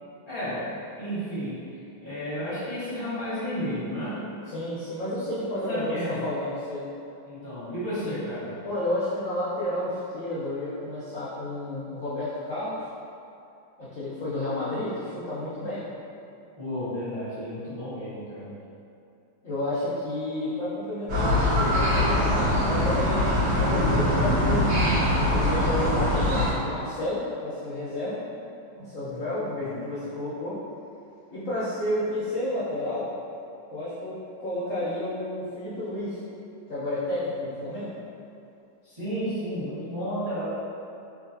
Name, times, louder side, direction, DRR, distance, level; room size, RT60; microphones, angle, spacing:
voice 1, 0.3-1.6 2.0-4.2 5.5-6.3 7.2-8.6 16.6-18.6 29.0-29.8 38.8-40.4, equal, 30° right, -13 dB, 0.5 m, -32 dB
voice 2, 4.5-6.8 8.6-12.8 13.8-15.8 19.4-24.8 25.3-28.2 28.7-30.6 31.3-33.1 33.7-34.1 34.4-36.2 36.7-37.9, left 1 dB, 70° left, -11 dB, 0.7 m, -31 dB
sound 1, 21.1-26.5, left 1 dB, 50° right, 1.7 m, -23 dB
3.8 x 2.5 x 2.6 m, 2.6 s
omnidirectional pair, 2.2 m